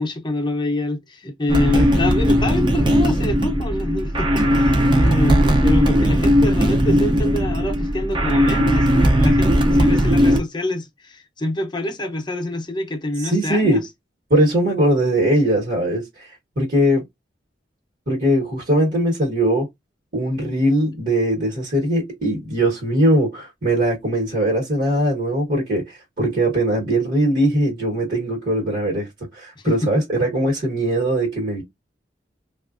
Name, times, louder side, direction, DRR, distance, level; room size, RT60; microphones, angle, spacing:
voice 1, 0.0-13.8 29.6-30.0, left 1 dB, 25° left, 0.7 m, -26 dB
sound 1, 1.5-10.4, equal, 25° right, 0.6 m, -17 dB
voice 2, 13.2-13.8 14.3-16.3 16.6-17.0 18.1-19.7 20.1-31.6, right 1 dB, 50° right, 1.2 m, -20 dB
3.3 x 2.4 x 2.5 m
head